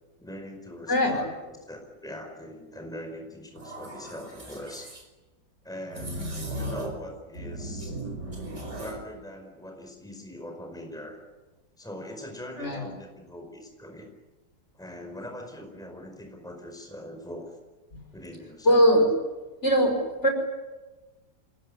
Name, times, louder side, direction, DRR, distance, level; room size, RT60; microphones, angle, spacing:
voice 1, 0.2-1.4 1.7-4.9 5.6-7.9 8.8-11.2 11.8-14.1 14.7-17.6 18.1-18.8, left 1 dB, ahead, 3 dB, 4.9 m, -41 dB
voice 2, 0.9-1.2 6.2-6.3 12.6-12.9 18.6-19.1 19.6-20.3, equal, 35° left, 4 dB, 5.7 m, -21 dB
sound 1, 3.6-5.0 5.9-7.1 7.3-9.0, right 1 dB, 35° right, 5.3 m, -36 dB
28.0 x 20.5 x 9.9 m, 1.1 s
omnidirectional pair, 2.0 m